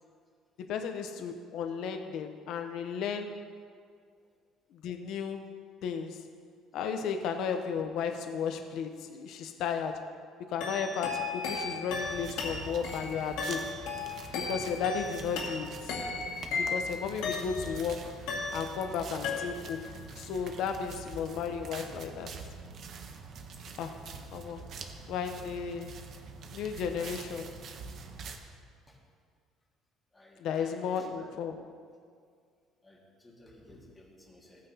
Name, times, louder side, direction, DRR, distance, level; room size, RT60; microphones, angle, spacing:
voice 1, 0.7-3.4 4.7-5.5 5.8-6.3 6.7-10.1 10.4-13.7 14.3-16.0 16.6-18.2 18.5-19.9 20.2-22.3 23.8-24.0 24.3-24.7 25.1-26.0 26.5-27.5 30.4-31.6, left 6 dB, 55° left, 6 dB, 0.7 m, -34 dB
sound 1, 10.6-17.8 18.3-19.0 19.2-19.9, left 4 dB, 90° left, 2.1 m, -36 dB
sound 2, 11.9-28.4, right 4 dB, 40° right, 0.8 m, -45 dB
voice 2, 30.1-31.3 32.8-34.7, left 1 dB, 10° left, -3 dB, 1.8 m, -55 dB
17.0 x 9.2 x 2.8 m, 2.1 s
cardioid pair, 175°, 0 cm